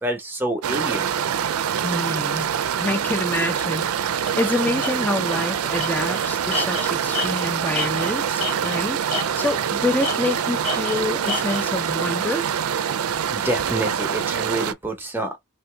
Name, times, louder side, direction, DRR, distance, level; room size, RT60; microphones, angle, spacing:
voice 1, 0.0-1.1 13.3-15.4, right 1 dB, 10° right, 0.9 m, -27 dB
sound 1, 0.6-14.7, right 8 dB, 90° right, 0.4 m, -25 dB
voice 2, 1.8-2.5 2.8-12.5, left 2 dB, 10° left, 0.5 m, -27 dB
Tools, 4.3-4.4 4.8-4.9 5.3-5.5 5.8-8.8 9.1-9.6 10.0-11.7, left 3 dB, 30° left, 1.2 m, -30 dB
3.0 x 2.7 x 3.3 m
head